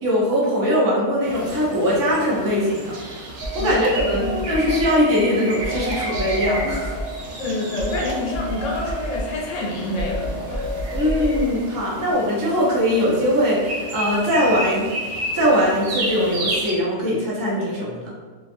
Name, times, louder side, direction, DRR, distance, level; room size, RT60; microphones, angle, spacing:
voice 1, 0.0-6.9 11.0-14.9 15.3-18.1, equal, 25° right, -6 dB, 0.5 m, -21 dB
sound 1, 1.2-16.7, right 1 dB, 90° right, 1.0 m, -33 dB
sound 2, 3.4-5.0 5.6-7.1 7.8-9.3 10.0-11.5, right 1 dB, 65° right, 0.7 m, -29 dB
sound 3, 4.3-8.6, left 3 dB, 45° left, 0.8 m, -35 dB
voice 2, 7.4-10.6, left 2 dB, 85° left, -2 dB, 1.0 m, -27 dB
2.5 x 2.3 x 2.5 m, 1.4 s
omnidirectional pair, 1.2 m